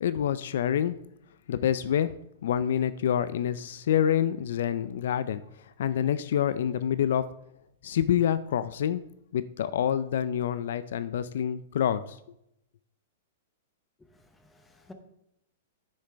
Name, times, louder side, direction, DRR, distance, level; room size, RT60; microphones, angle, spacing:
voice 1, 0.0-1.0 1.5-2.1 2.4-5.4 5.8-7.2 7.8-9.0 9.3-12.2, left 9 dB, 65° left, 0.3 m, -27 dB
voice 2, 14.0-14.9, left 2 dB, 5° left, 0.7 m, -53 dB
9.7 x 6.4 x 3.4 m
supercardioid pair, 165°, 0 cm